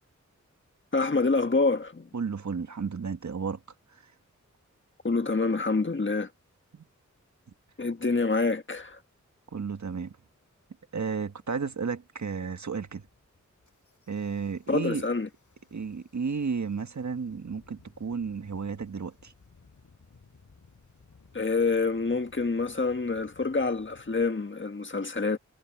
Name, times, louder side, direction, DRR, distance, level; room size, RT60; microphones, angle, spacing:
voice 1, 0.9-2.1 5.0-6.3 7.8-9.0 14.7-15.3 21.3-25.4, left 3 dB, 40° left, 1.5 m, -27 dB
voice 2, 2.1-3.6 6.7-6.8 9.5-10.1 10.9-13.0 14.1-15.0 15.7-19.3, right 5 dB, 70° right, 1.5 m, -33 dB
Engine starting, 7.9-8.0 8.7-9.0 9.7-10.1 10.4-10.9 11.4-11.9 12.3-12.5 12.9-24.2, left 4 dB, 80° left, 6.8 m, -59 dB
wide cardioid pair, 85°, 30 cm